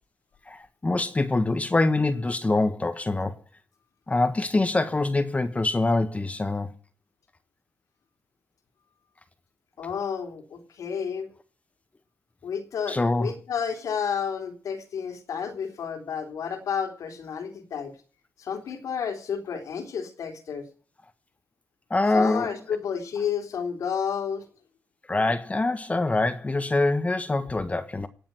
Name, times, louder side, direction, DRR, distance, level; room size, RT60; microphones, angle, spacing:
voice 1, 0.5-3.4 4.1-6.7 12.9-13.3 21.9-22.5 25.1-28.1, left 2 dB, 25° left, 1.4 m, -24 dB
voice 2, 9.8-11.3 12.4-18.0 18.4-20.7 22.1-24.4, left 7 dB, 85° left, 3.5 m, -31 dB
18.5 x 7.1 x 9.5 m
cardioid pair, 80°, 6 cm